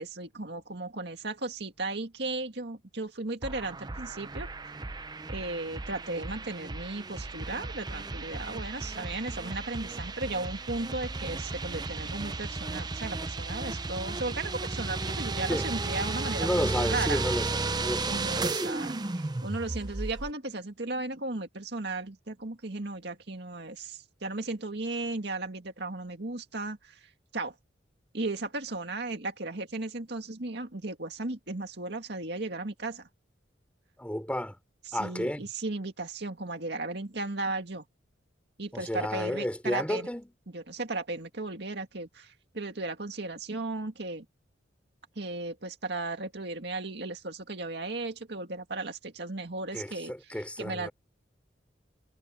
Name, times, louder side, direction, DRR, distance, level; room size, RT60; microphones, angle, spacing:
voice 1, 0.0-4.5 5.3-17.2 18.1-27.0 27.3-27.6 28.1-33.1 34.9-37.8 38.6-40.1 40.5-44.3 45.2-50.1 50.6-50.9, right 2 dB, 60° right, 2.2 m, -35 dB
sound 1, 3.4-20.3, right 3 dB, 20° right, 0.6 m, -34 dB
voice 2, 16.4-18.7 34.0-34.6 34.9-35.5 38.7-40.3 49.7-50.9, equal, 5° left, 3.7 m, -32 dB
head